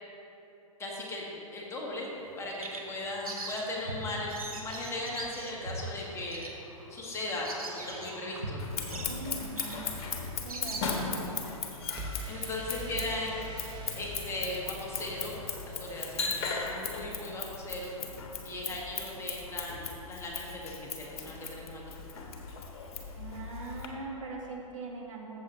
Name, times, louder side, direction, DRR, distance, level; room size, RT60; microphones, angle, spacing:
voice 1, 0.8-6.5 6.9-8.6 12.3-13.4 13.9-15.4 15.8-17.9 18.4-22.0, left 2 dB, 15° left, -3 dB, 1.4 m, -37 dB
Bird vocalization bird call bird song, 2.1-11.3, right 2 dB, 80° right, 1.3 m, -42 dB
sound 1, 3.8-5.9 12.0-17.7, right 1 dB, 25° right, 1.0 m, -45 dB
Scissors, 8.6-23.9, left 5 dB, 50° left, 1.3 m, -38 dB
voice 2, 9.0-10.0 10.4-11.2 23.2-25.4, right 3 dB, 65° right, -2 dB, 1.8 m, -41 dB
13.5 x 7.5 x 3.1 m, 2.9 s
figure-of-eight pair, 110°, 18 cm